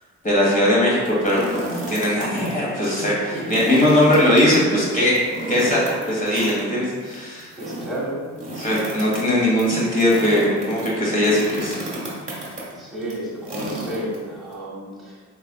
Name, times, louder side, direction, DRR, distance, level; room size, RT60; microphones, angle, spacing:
voice 1, 0.2-5.2 5.5-7.5 8.6-11.8, left 1 dB, 25° left, -5 dB, 1.5 m, -20 dB
sound 1, 0.9-2.5 2.8-2.9 3.3-14.5, right 1 dB, 25° right, 1.4 m, -33 dB
voice 2, 7.6-8.2 12.7-15.2, right 1 dB, ahead, -8 dB, 1.4 m, -31 dB
4.1 x 3.3 x 2.3 m, 1.5 s
cardioid pair, 90°, 30 cm